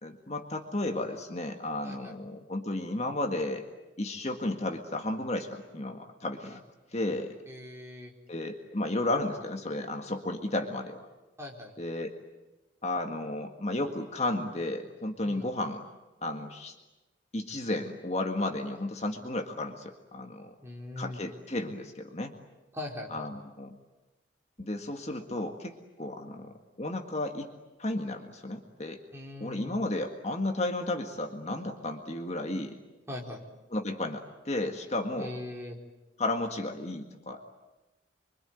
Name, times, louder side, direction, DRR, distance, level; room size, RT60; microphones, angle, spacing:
voice 1, 0.0-3.7 4.0-6.6 6.9-7.3 8.3-11.0 11.8-12.2 12.8-15.8 16.2-16.8 17.3-20.5 20.9-22.3 23.1-23.8 24.6-27.5 27.8-29.0 29.4-32.8 33.7-35.4 36.2-37.6, left 2 dB, 35° left, 4 dB, 1.8 m, -33 dB
voice 2, 1.8-2.1 7.5-8.1 11.4-11.7 15.2-15.5 20.6-21.2 22.7-23.3 29.1-29.8 33.1-33.4 35.2-35.8, left 1 dB, 15° right, -1 dB, 4.3 m, -41 dB
26.5 x 24.0 x 9.3 m, 1.1 s
head